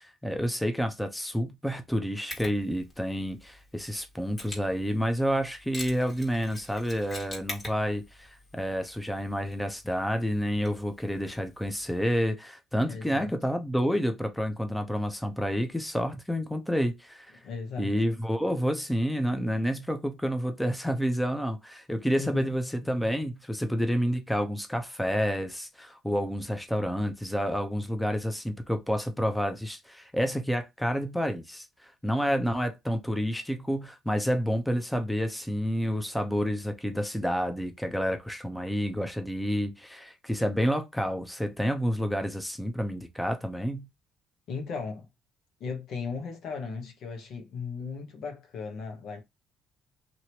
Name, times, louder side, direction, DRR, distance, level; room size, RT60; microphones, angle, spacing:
voice 1, 0.0-17.4 17.8-43.9, equal, 5° left, 0.7 m, -29 dB
Mechanisms, 2.3-12.2, left 1 dB, 30° left, 1.7 m, -46 dB
voice 2, 12.9-13.3 17.4-17.9 22.2-22.5 44.5-45.1 45.6-49.2, left 5 dB, 70° left, 1.1 m, -36 dB
2.9 x 2.9 x 2.8 m
supercardioid pair, 70°, 0 cm